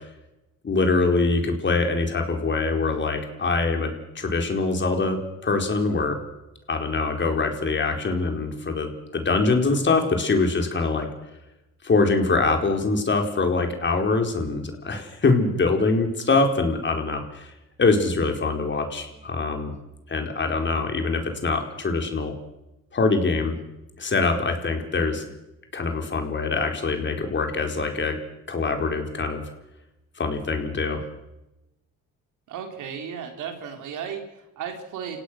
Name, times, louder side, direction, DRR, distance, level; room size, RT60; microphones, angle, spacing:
voice 1, 0.6-3.9 4.1-6.2 6.7-11.1 11.8-17.5 17.8-19.7 20.1-22.3 22.9-23.6 24.0-25.3 25.7-28.1 28.5-29.4 30.2-31.0, left 3 dB, 40° left, 4 dB, 4.5 m, -24 dB
voice 2, 32.5-35.2, right 7 dB, 85° right, 5 dB, 3.9 m, -35 dB
29.5 x 17.0 x 6.4 m, 0.95 s
cardioid pair, 90°, 30 cm